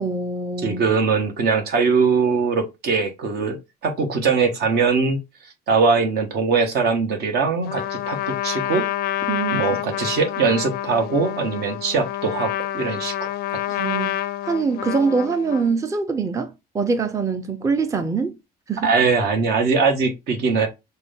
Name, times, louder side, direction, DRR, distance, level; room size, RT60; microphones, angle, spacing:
voice 1, 0.0-0.8 9.3-9.8 13.8-14.1 14.4-18.4 18.7-18.9, right 4 dB, 20° right, 0.5 m, -24 dB
voice 2, 0.6-3.6 3.8-5.2 5.7-8.9 9.5-13.3 18.8-20.7, right 4 dB, 70° right, 1.3 m, -21 dB
Trumpet, 7.6-15.8, left 13 dB, 70° left, 0.4 m, -28 dB
6.0 x 2.3 x 3.5 m
cardioid pair, 110°, 17 cm